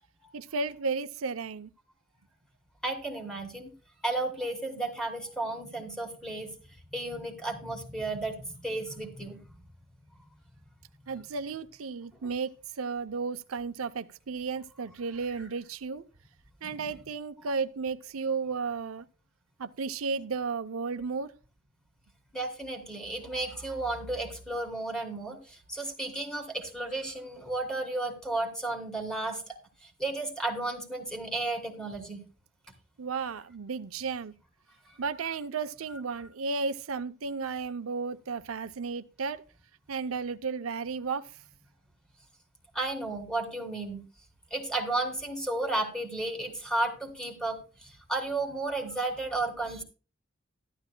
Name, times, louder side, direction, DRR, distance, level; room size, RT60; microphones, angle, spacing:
voice 1, 0.3-1.7 11.1-16.0 16.6-19.0 19.6-21.3 33.0-34.3 35.0-39.4 39.9-41.3, right 4 dB, 90° right, 0.6 m, -33 dB
voice 2, 2.8-3.7 4.0-6.5 6.9-9.4 16.7-16.9 22.3-29.4 29.8-32.2 42.7-44.0 44.5-49.8, right 2 dB, 5° left, 2.7 m, -33 dB
14.0 x 12.0 x 2.2 m
head